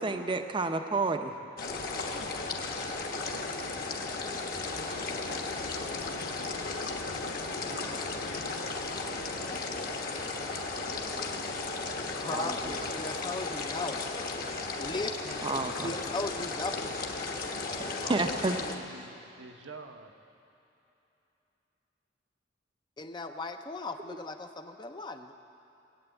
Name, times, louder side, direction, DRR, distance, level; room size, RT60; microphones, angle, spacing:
voice 1, 0.0-1.3 12.3-12.7 15.4-15.9 17.8-18.6, right 3 dB, 25° right, 7 dB, 0.6 m, -30 dB
sound 1, 1.6-18.8, left 3 dB, 50° left, 1.2 m, -35 dB
voice 2, 3.3-3.7 4.1-6.9 7.6-9.8 10.2-11.5 18.0-20.1, right 3 dB, 75° right, 4 dB, 1.0 m, -49 dB
sound 2, 4.9-10.6, left 4 dB, 85° left, 0.5 m, -46 dB
voice 3, 12.2-14.4 14.8-15.5 15.8-16.9 23.0-25.3, left 3 dB, 25° left, 7 dB, 0.5 m, -37 dB
19.5 x 8.8 x 8.1 m, 2.9 s
head